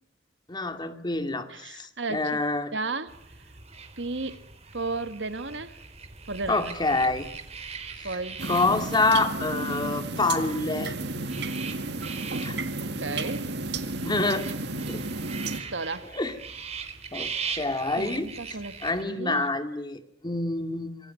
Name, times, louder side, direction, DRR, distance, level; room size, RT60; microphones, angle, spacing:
voice 1, 0.5-2.7 6.5-7.3 8.0-8.1 8.4-10.9 12.4-12.6 13.1-13.3 14.0-14.5 14.9-15.1 16.1-16.3 17.1-17.3 17.6-18.3 18.8-21.1, left 3 dB, 25° left, 2.3 m, -27 dB
voice 2, 1.5-2.4 2.7-3.2 4.0-4.4 4.7-5.8 6.3-6.7 8.0-8.4 12.8-13.5 15.5-16.1 18.0-18.8 19.0-19.5, right 3 dB, 85° right, 1.9 m, -33 dB
sound 1, 3.1-19.0, right 5 dB, 35° right, 3.5 m, -41 dB
sound 2, 8.4-15.6, right 2 dB, 65° right, 2.0 m, -32 dB
26.5 x 22.5 x 9.5 m
head